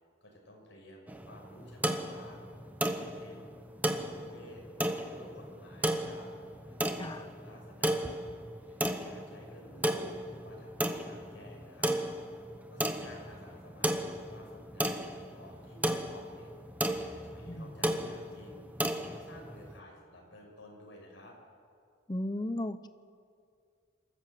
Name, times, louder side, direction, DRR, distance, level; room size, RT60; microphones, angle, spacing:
voice 1, 0.2-2.5 2.9-3.5 3.8-4.6 5.1-6.3 6.7-8.2 8.6-12.0 12.7-16.5 17.0-18.7 19.0-21.4, equal, 65° left, 0 dB, 5.6 m, -53 dB
sound 1, 1.1-19.8, right 1 dB, 10° right, 1.0 m, -35 dB
voice 2, 22.1-22.9, left 1 dB, 20° left, 12 dB, 0.8 m, -35 dB
26.5 x 14.0 x 7.8 m, 2.3 s
head